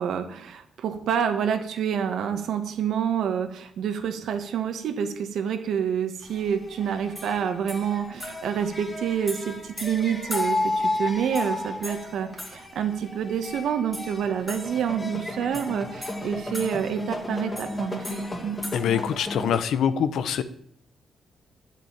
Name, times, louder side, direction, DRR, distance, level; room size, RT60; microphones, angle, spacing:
voice 1, 0.0-18.6, right 8 dB, 75° right, 7 dB, 1.9 m, -28 dB
sound 1, 6.2-19.6, left 2 dB, 15° left, 2.4 m, -33 dB
voice 2, 18.7-20.4, left 8 dB, 80° left, 13 dB, 1.0 m, -24 dB
11.0 x 7.5 x 9.0 m, 0.66 s
cardioid pair, 125°, 0 cm